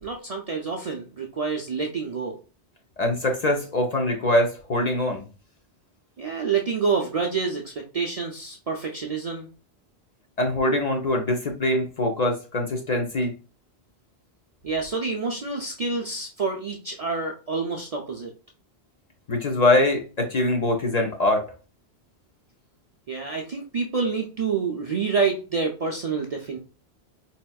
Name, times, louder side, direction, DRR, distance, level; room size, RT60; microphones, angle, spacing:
voice 1, 0.0-2.4 6.2-9.5 14.6-18.3 23.1-26.6, right 5 dB, 50° right, 0 dB, 0.4 m, -28 dB
voice 2, 3.0-5.2 10.4-13.3 19.3-21.4, left 1 dB, 50° left, 2 dB, 0.6 m, -23 dB
4.3 x 2.8 x 2.3 m, 0.35 s
omnidirectional pair, 1.1 m